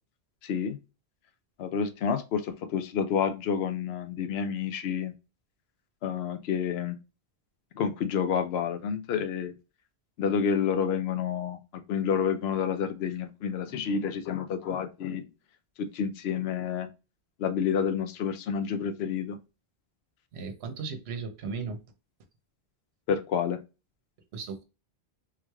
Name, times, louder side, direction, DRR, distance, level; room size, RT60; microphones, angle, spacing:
voice 1, 0.4-0.8 1.6-5.1 6.0-7.0 7.8-9.5 10.2-15.3 15.8-16.9 17.4-19.4 23.1-23.6, left 7 dB, 75° left, 9 dB, 0.8 m, -29 dB
voice 2, 20.3-21.8 24.3-24.6, right 5 dB, 75° right, 7 dB, 1.0 m, -36 dB
3.7 x 3.1 x 2.2 m, 0.29 s
omnidirectional pair, 1.1 m